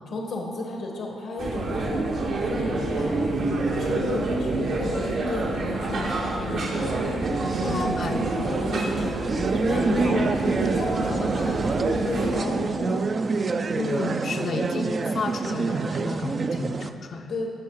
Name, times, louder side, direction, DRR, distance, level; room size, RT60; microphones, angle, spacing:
voice 1, 0.1-3.5 3.8-7.0 7.5-13.1 17.1-17.5, left 2 dB, 85° left, 0 dB, 1.4 m, -33 dB
sound 1, 1.4-12.4, right 2 dB, 75° right, 1.8 m, -27 dB
sound 2, 7.2-16.9, right 4 dB, 45° right, 0.5 m, -27 dB
voice 2, 7.6-8.1 9.7-9.8 13.8-17.3, left 4 dB, 60° left, 5 dB, 0.7 m, -32 dB
15.5 x 5.6 x 4.7 m, 2.2 s
cardioid pair, 70°, 0 cm